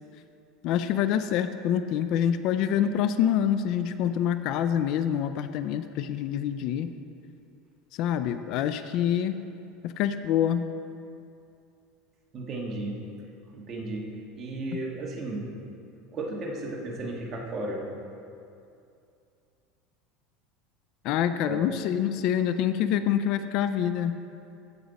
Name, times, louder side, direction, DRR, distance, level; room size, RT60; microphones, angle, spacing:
voice 1, 0.6-6.9 7.9-9.4 9.8-10.7 21.0-24.2, left 9 dB, 55° left, 11 dB, 0.4 m, -26 dB
voice 2, 12.3-13.0 13.5-14.1 14.3-15.5 16.1-17.8 21.5-21.6, right 2 dB, 35° right, -2 dB, 1.6 m, -34 dB
15.0 x 5.2 x 4.1 m, 2.6 s
supercardioid pair, 135°, 0 cm